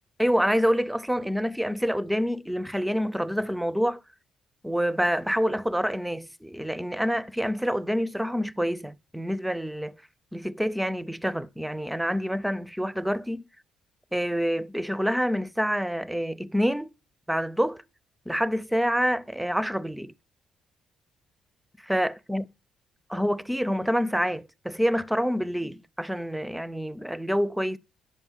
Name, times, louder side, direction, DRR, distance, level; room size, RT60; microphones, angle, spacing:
voice 1, 0.2-4.0 4.6-9.9 10.3-13.4 14.1-16.9 17.3-17.8 18.3-20.1 21.8-22.4 23.1-27.8, equal, 5° right, 0.5 m, -27 dB
11.0 x 5.3 x 7.3 m
cardioid pair, 90°, 0 cm